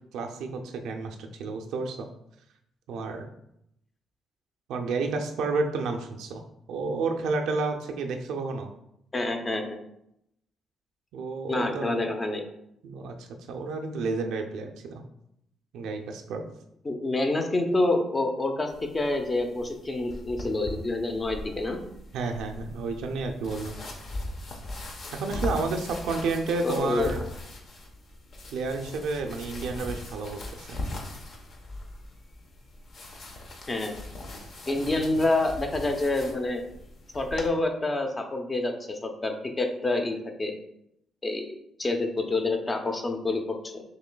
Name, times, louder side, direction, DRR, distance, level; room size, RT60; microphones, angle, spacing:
voice 1, 0.1-2.1 2.9-3.3 4.7-6.4 6.7-8.7 11.1-12.0 12.8-15.0 15.7-16.4 22.1-23.8 25.1-27.2 28.5-30.8, right 3 dB, 80° right, 4 dB, 0.4 m, -31 dB
voice 2, 9.1-9.8 11.5-12.5 16.8-21.8 26.6-27.1 33.7-34.0 34.7-36.6 37.1-40.5 41.2-43.8, left 2 dB, 25° left, 4 dB, 0.6 m, -27 dB
sound 1, 18.7-37.5, left 1 dB, 55° left, 0.8 m, -40 dB
6.0 x 3.1 x 2.2 m, 0.79 s
cardioid pair, 90°, 0 cm